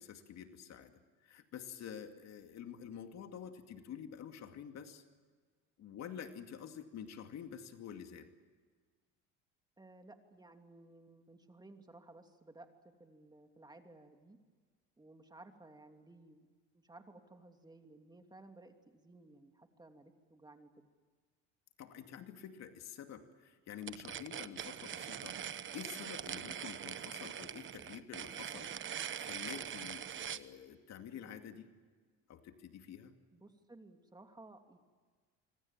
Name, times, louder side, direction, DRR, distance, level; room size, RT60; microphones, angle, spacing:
voice 1, 0.0-5.0 5.8-8.3 21.8-31.7 32.3-33.2, left 8 dB, 55° left, 6 dB, 2.4 m, -49 dB
voice 2, 9.8-12.7 13.0-14.4 15.0-16.5 16.7-20.9 33.3-34.8, right 2 dB, 15° right, 5 dB, 2.8 m, -57 dB
sound 1, 23.8-30.5, right 9 dB, 40° right, 1.1 m, -43 dB
26.0 x 25.0 x 7.4 m, 1.5 s
supercardioid pair, 95°, 31 cm